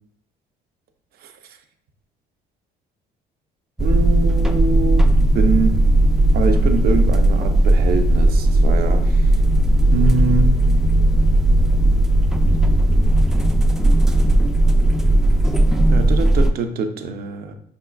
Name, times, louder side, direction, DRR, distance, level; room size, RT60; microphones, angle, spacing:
sound 1, 3.8-16.5, right 1 dB, 5° right, 0.3 m, -16 dB
voice 1, 3.8-5.7 6.3-9.2 9.9-10.6 15.9-17.5, right 3 dB, 65° right, 6 dB, 0.6 m, -24 dB
4.8 x 3.6 x 2.3 m, 0.66 s
cardioid pair, 110°, 17 cm